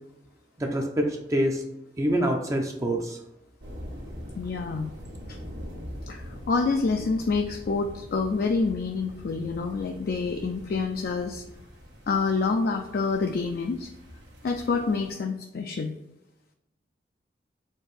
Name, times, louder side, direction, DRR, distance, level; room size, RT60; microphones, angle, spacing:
voice 1, 0.6-1.6 2.0-3.2, right 1 dB, 20° right, 2 dB, 0.4 m, -26 dB
sound 1, 3.6-15.1, equal, 75° right, 1.2 m, -43 dB
voice 2, 4.4-4.9 5.3-5.4 6.1-11.4 12.1-13.9 14.4-15.9, left 4 dB, 55° left, 4 dB, 0.4 m, -27 dB
4.3 x 2.6 x 4.8 m, 0.91 s
head